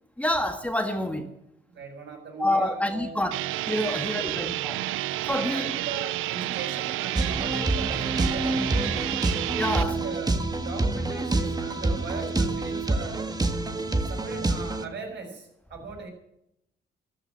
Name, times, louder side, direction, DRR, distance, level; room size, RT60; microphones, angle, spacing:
voice 1, 0.2-1.3 2.4-3.4 3.7-4.8 5.3-5.7 9.5-10.0, left 1 dB, 5° left, 1.6 m, -27 dB
voice 2, 1.7-3.3 3.8-4.6 5.3-9.4 9.9-13.3 14.1-16.1, right 4 dB, 65° right, 7.0 m, -39 dB
sound 1, 3.3-9.8, right 17 dB, 85° right, 0.5 m, -30 dB
sound 2, 7.1-14.8, right 2 dB, 20° right, 1.6 m, -27 dB
13.5 x 12.5 x 7.6 m
cardioid pair, 90°, 20 cm